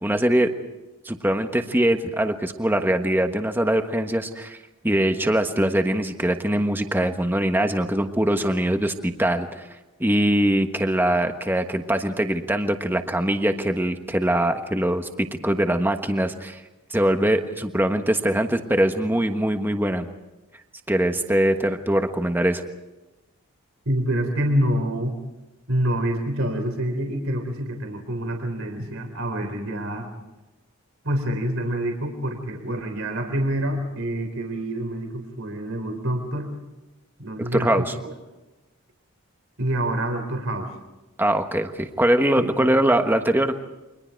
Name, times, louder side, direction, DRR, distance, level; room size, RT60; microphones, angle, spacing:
voice 1, 0.0-0.5 1.0-4.6 4.8-9.7 10.0-16.6 16.9-20.1 20.9-22.6 37.5-37.9 41.2-43.5, right 1 dB, 10° right, 6 dB, 1.3 m, -22 dB
voice 2, 23.9-25.2 25.7-30.1 31.0-36.5 37.2-37.7 39.6-40.7 42.4-42.7, right 1 dB, 70° right, 4 dB, 3.6 m, -26 dB
29.5 x 24.5 x 4.6 m, 1.0 s
head